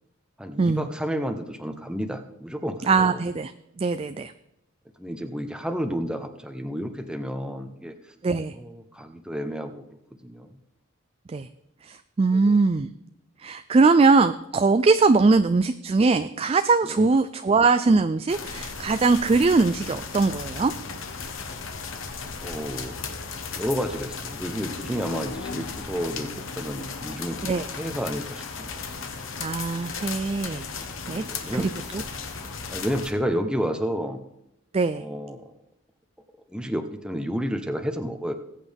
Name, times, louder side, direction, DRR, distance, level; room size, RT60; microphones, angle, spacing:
voice 1, 0.4-3.2 5.0-8.1 8.5-10.6 12.3-12.6 16.8-17.1 22.4-23.0 23.5-26.3 26.6-28.7 31.1-31.7 32.7-34.2 35.0-35.5 36.5-38.3, equal, 5° right, 6 dB, 0.8 m, -31 dB
voice 2, 2.9-3.5 3.8-4.3 8.2-8.5 11.3-11.5 11.8-12.9 13.4-20.7 27.4-27.7 29.4-30.7 31.1-31.2 31.5-32.0 34.7-35.0, right 3 dB, 30° right, 10 dB, 0.3 m, -21 dB
sound 1, 18.3-33.1, left 5 dB, 70° left, 1.2 m, -35 dB
19.5 x 8.4 x 3.5 m, 0.83 s
head